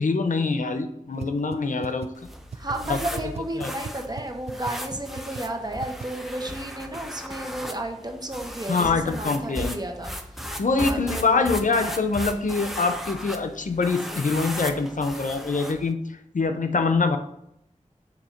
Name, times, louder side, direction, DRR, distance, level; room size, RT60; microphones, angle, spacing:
voice 1, 0.0-2.1 2.9-3.0 3.6-3.7 8.7-9.8 10.6-16.0 16.3-17.2, left 4 dB, 80° left, 7 dB, 0.6 m, -24 dB
sound 1, 1.2-1.3 1.5-1.6 1.8-2.1 2.5-2.8 3.2-3.4 3.8-3.9 4.2-4.3 4.5-4.7 5.2-5.4 5.8-6.0, right 6 dB, 55° right, 0.4 m, -35 dB
sound 2, 2.1-15.9, equal, ahead, 0.7 m, -37 dB
voice 2, 2.5-11.4, right 1 dB, 30° right, 3 dB, 1.0 m, -33 dB
7.2 x 2.8 x 5.8 m, 0.78 s
wide cardioid pair, 65°, 13 cm